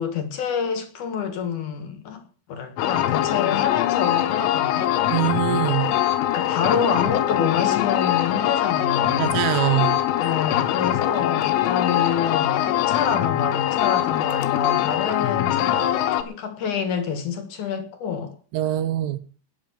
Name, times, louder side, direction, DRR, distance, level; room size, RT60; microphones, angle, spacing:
voice 1, 0.0-5.0 6.3-9.3 10.2-18.3, left 7 dB, 60° left, 2.2 m, -27 dB
sound 1, 2.8-16.2, left 12 dB, 85° left, 3.6 m, -22 dB
voice 2, 5.1-5.9 9.2-10.0 18.5-19.2, right 14 dB, 85° right, 3.5 m, -23 dB
19.0 x 6.5 x 7.2 m
omnidirectional pair, 5.5 m